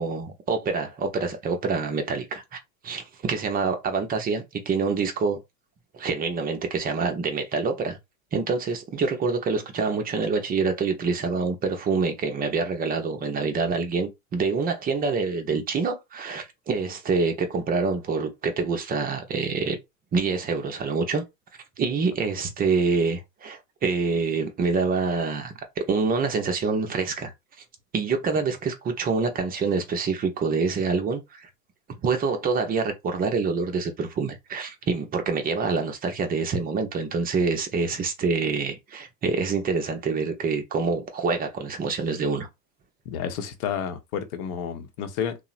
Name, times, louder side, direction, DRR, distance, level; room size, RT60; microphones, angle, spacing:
voice 1, 0.0-2.6 2.8-5.4 5.9-8.0 8.3-19.8 20.1-21.2 21.8-27.3 27.9-31.5 32.0-42.5, right 4 dB, 20° right, 0.5 m, -26 dB
voice 2, 43.1-45.4, left 8 dB, 55° left, 0.8 m, -31 dB
2.8 x 2.1 x 2.4 m
hypercardioid pair, 95°, 50 cm